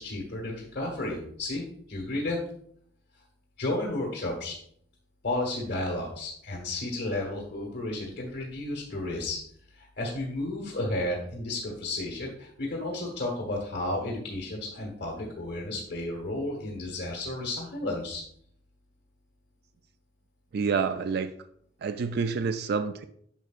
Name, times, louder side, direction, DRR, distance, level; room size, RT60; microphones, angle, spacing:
voice 1, 0.0-2.4 3.6-4.6 5.2-9.4 9.7-18.2, left 2 dB, 60° left, -2 dB, 1.3 m, -32 dB
voice 2, 20.5-21.3 21.8-23.0, right 5 dB, 60° right, 10 dB, 0.3 m, -28 dB
9.2 x 5.7 x 2.4 m, 0.67 s
head